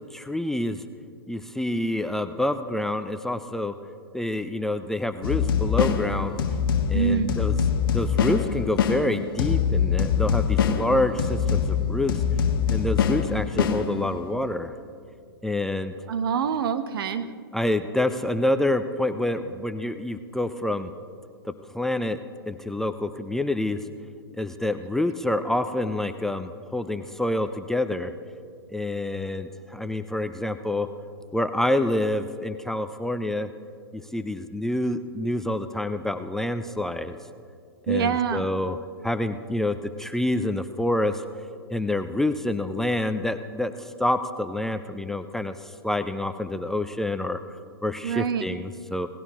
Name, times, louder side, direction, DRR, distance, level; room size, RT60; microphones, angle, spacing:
voice 1, 0.1-0.8 1.3-3.7 4.1-6.3 6.9-7.6 7.9-12.1 12.7-14.7 15.4-15.9 17.5-20.9 21.4-22.2 22.5-23.8 24.3-28.1 28.7-30.9 31.3-33.5 33.9-37.2 37.9-38.8 39.0-41.2 41.7-47.4 47.8-49.1, left 1 dB, 5° left, 9 dB, 0.4 m, -27 dB
sound 1, 5.2-14.3, left 7 dB, 60° left, 1.3 m, -24 dB
voice 2, 6.9-7.4 16.1-17.3 37.9-38.5 48.0-48.4, right 7 dB, 65° right, 10 dB, 1.0 m, -25 dB
18.5 x 15.5 x 3.0 m, 2.2 s
hypercardioid pair, 125°, 13 cm